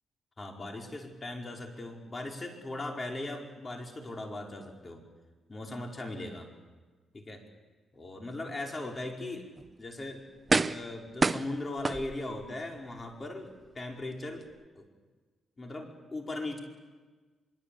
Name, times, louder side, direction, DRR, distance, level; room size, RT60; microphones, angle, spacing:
voice 1, 0.4-5.0 5.5-6.5 7.1-7.4 7.9-10.2 10.6-14.5 14.7-14.8 15.6-16.6, left 2 dB, 30° left, 1 dB, 5.1 m, -39 dB
sound 1, 9.6-9.7 10.5-10.9 11.2-12.5 13.0-13.1, right 3 dB, 30° right, 0.7 m, -28 dB
24.0 x 23.5 x 8.7 m, 1.3 s
cardioid pair, 90°, 0 cm